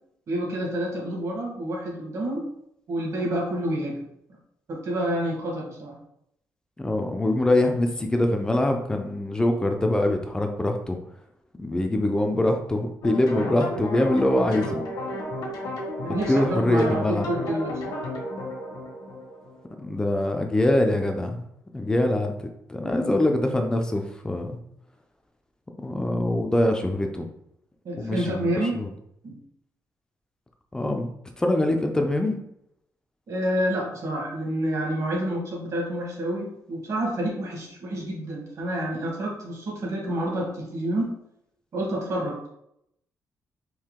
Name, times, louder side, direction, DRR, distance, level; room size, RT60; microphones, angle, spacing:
voice 1, 0.3-2.5 2.9-4.0 4.7-6.0 16.0-18.0 27.8-28.8 29.2-29.4 33.3-41.1 41.7-42.5, right 1 dB, 50° right, -1 dB, 1.4 m, -28 dB
voice 2, 6.8-11.0 11.5-14.8 16.1-17.3 19.8-21.5 21.7-22.3 22.7-24.6 25.8-27.3 28.0-28.9 30.7-31.1 31.4-32.4, left 1 dB, 10° left, 4 dB, 0.4 m, -24 dB
sound 1, 13.0-20.0, left 1 dB, 85° left, 1.3 m, -33 dB
4.5 x 2.8 x 3.6 m, 0.76 s
wide cardioid pair, 165°, 7 cm